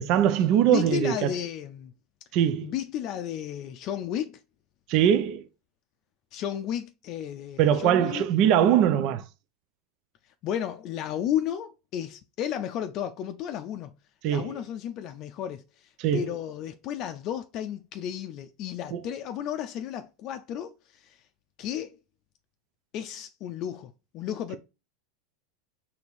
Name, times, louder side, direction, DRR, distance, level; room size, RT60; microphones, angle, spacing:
voice 1, 0.0-1.3 2.3-2.7 4.9-5.4 7.6-9.2 14.2-14.6 16.0-16.2 18.9-19.0, right 10 dB, 55° right, 0.4 m, -22 dB
voice 2, 0.6-1.9 2.6-4.4 6.3-8.2 10.4-13.9 14.3-21.2 21.6-22.0 22.9-24.6, left 10 dB, 50° left, 0.4 m, -33 dB
4.5 x 2.8 x 4.1 m
hypercardioid pair, 90°, 0 cm